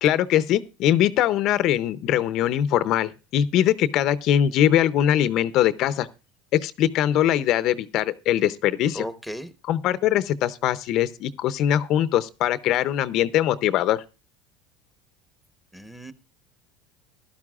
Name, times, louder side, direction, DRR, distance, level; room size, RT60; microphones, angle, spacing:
voice 1, 0.0-6.1 6.5-9.0 9.6-14.0, left 11 dB, 50° left, 0.6 m, -22 dB
voice 2, 8.9-9.5 15.7-16.1, equal, ahead, 1.0 m, -35 dB
15.5 x 11.5 x 2.4 m
supercardioid pair, 125°, 0 cm